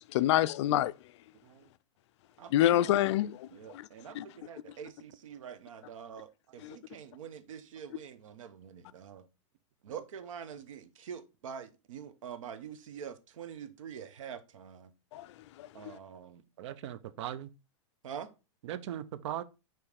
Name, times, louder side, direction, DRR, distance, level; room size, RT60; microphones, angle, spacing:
voice 1, 0.1-0.9 2.5-3.9 4.1-4.2 6.6-6.8 15.1-15.3 15.6-16.0, left 13 dB, 60° left, 0.4 m, -27 dB
voice 2, 2.4-2.9 3.5-9.3 9.8-14.9 15.7-16.4 18.0-18.3, right 8 dB, 80° right, 1.0 m, -45 dB
voice 3, 16.6-17.5 18.6-19.4, right 11 dB, 60° right, 0.6 m, -39 dB
9.3 x 3.1 x 3.4 m
supercardioid pair, 140°, 17 cm